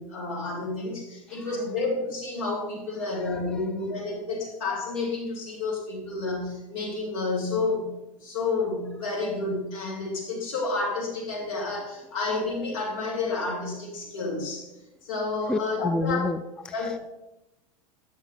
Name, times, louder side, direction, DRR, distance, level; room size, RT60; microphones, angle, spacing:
voice 1, 0.0-14.7 15.0-16.2 16.7-16.9, left 3 dB, 70° left, -1 dB, 2.7 m, -30 dB
voice 2, 1.3-1.7 2.9-3.7 15.5-17.1, left 2 dB, 5° left, 11 dB, 0.3 m, -31 dB
8.8 x 6.2 x 3.8 m, 0.91 s
hypercardioid pair, 85°, 18 cm